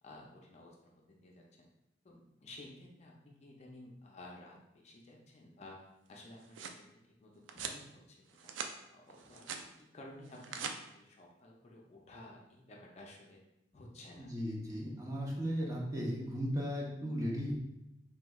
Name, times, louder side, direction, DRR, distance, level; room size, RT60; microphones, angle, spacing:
voice 1, 0.0-1.4 2.0-6.9 7.2-8.5 8.9-13.4 13.7-14.3, left 1 dB, 35° left, -1 dB, 0.4 m, -54 dB
sound 1, 6.1-6.8 7.5-7.8 8.3-8.7 9.1-9.7 10.3-10.8, right 6 dB, 80° right, 0.3 m, -42 dB
voice 2, 14.2-17.5, equal, 20° right, -3 dB, 0.6 m, -36 dB
3.4 x 3.0 x 2.2 m, 0.87 s
head